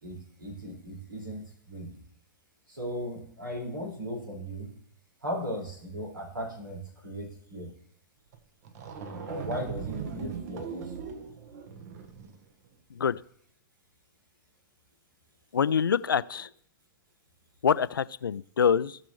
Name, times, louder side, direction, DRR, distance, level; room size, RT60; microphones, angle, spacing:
voice 1, 0.0-2.0 2.7-4.7 5.2-7.7 9.3-11.1, equal, 85° right, -3 dB, 4.9 m, -37 dB
sound 1, 8.3-8.4 8.6-12.4, right 6 dB, 50° right, 1.3 m, -39 dB
voice 2, 15.5-16.5 17.6-19.0, left 7 dB, 80° left, 16 dB, 0.4 m, -25 dB
17.5 x 6.1 x 3.1 m, 0.63 s
figure-of-eight pair, 115°, 11 cm